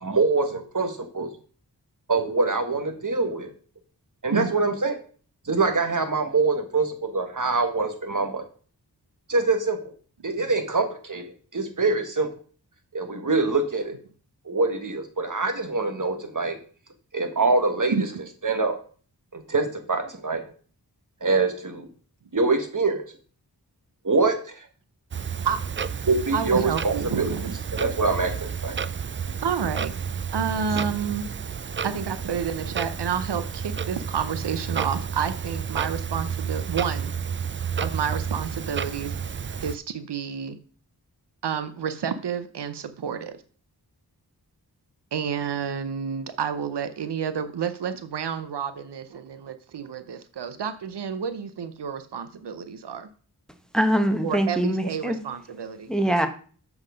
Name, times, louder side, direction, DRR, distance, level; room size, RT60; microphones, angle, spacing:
voice 1, 0.0-1.3 2.1-3.5 4.2-4.9 5.4-8.4 9.3-9.8 10.2-11.2 11.5-12.3 12.9-14.0 14.4-16.6 17.1-17.9 18.4-18.7 19.3-20.4 21.2-21.9 22.3-23.0 24.0-24.7 26.1-27.3 27.7-28.8 30.7-30.8, right 3 dB, 50° right, 5 dB, 1.7 m, -24 dB
Clock, 25.1-39.8, right 6 dB, 30° right, 0.4 m, -31 dB
voice 2, 26.3-27.8 29.4-29.9 30.3-31.2 31.8-37.1 37.8-39.1 39.6-40.6 41.4-43.4 45.1-53.1 54.2-55.9, right 7 dB, 90° right, 12 dB, 0.7 m, -30 dB
voice 3, 53.7-55.2 55.9-56.3, equal, ahead, 7 dB, 1.1 m, -23 dB
7.5 x 5.9 x 5.1 m, 0.42 s
wide cardioid pair, 55°, 40 cm